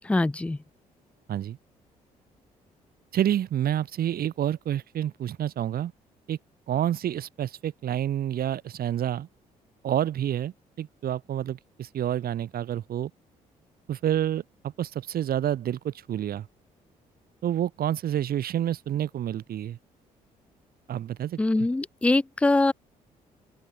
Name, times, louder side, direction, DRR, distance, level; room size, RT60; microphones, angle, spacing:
voice 1, 0.0-0.6 21.4-22.7, left 2 dB, 5° left, 0.4 m, -23 dB
voice 2, 3.1-5.9 6.3-6.4 6.7-9.3 9.8-13.1 13.9-16.5 17.4-19.8 20.9-21.7, right 11 dB, 50° right, 1.6 m, -28 dB
open air
figure-of-eight pair, 45°, 19 cm